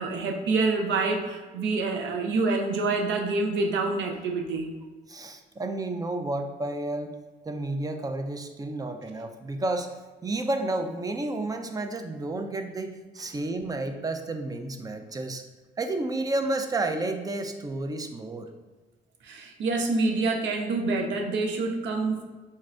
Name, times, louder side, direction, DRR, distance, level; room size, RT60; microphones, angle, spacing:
voice 1, 0.0-4.7 19.2-22.2, right 3 dB, 75° right, 3 dB, 0.6 m, -27 dB
voice 2, 5.1-7.2 7.5-9.9 10.2-15.4 15.8-18.5, right 2 dB, 20° right, 6 dB, 0.4 m, -31 dB
4.3 x 2.4 x 3.2 m, 1.3 s
cardioid pair, 75°, 19 cm